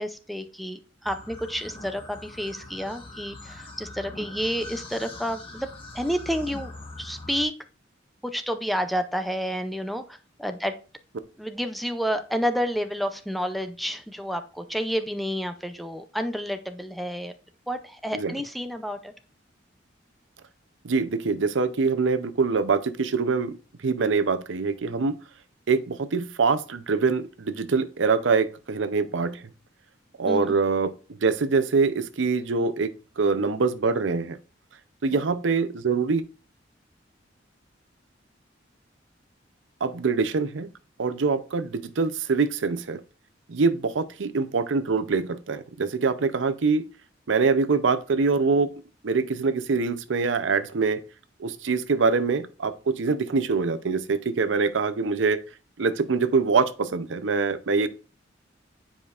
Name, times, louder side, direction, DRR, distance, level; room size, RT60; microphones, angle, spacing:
voice 1, 0.0-5.7 5.9-6.7 7.0-7.5 8.2-10.7 11.4-17.4 17.7-19.1 30.3-30.5, equal, ahead, 0.5 m, -30 dB
sound 1, 1.0-7.4, left 2 dB, 30° left, 1.3 m, -42 dB
voice 2, 20.8-23.5 23.8-25.2 25.7-29.4 30.2-30.9 31.2-32.9 33.2-34.4 35.0-36.2 39.8-40.7 41.0-43.0 43.5-46.8 47.3-48.7 49.0-51.0 51.4-55.4 55.8-57.9, right 4 dB, 85° right, 0.6 m, -24 dB
9.4 x 5.0 x 2.5 m
head